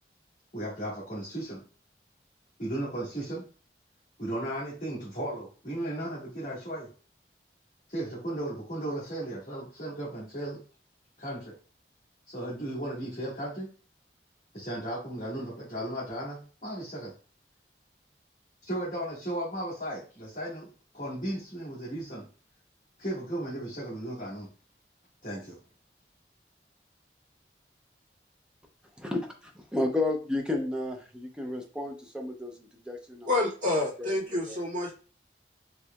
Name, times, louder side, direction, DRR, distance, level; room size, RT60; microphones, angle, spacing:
voice 1, 0.5-1.6 2.6-3.4 4.2-6.9 7.9-10.6 11.2-11.5 12.3-13.7 14.5-17.1 18.6-20.7 20.9-22.3 23.0-24.5 25.2-25.6, right 1 dB, 45° left, -12 dB, 1.7 m, -35 dB
voice 2, 29.0-33.3 34.0-34.1 34.5-34.6, left 2 dB, 5° right, 2 dB, 0.6 m, -32 dB
voice 3, 33.3-34.9, left 2 dB, 45° right, -7 dB, 1.9 m, -28 dB
4.5 x 3.2 x 2.3 m, 0.37 s
head